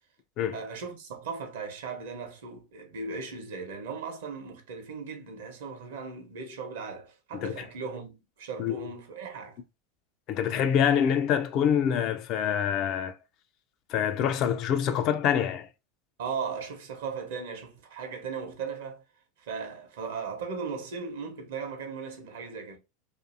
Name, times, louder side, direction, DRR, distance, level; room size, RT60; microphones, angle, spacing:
voice 1, 0.5-9.6 16.2-19.0 19.4-22.8, right 5 dB, 70° right, 0.8 m, -37 dB
voice 2, 7.3-7.6 8.6-8.9 10.3-13.2 13.9-15.7, left 8 dB, 50° left, 0.4 m, -26 dB
2.5 x 2.5 x 2.4 m
hypercardioid pair, 90°, 0 cm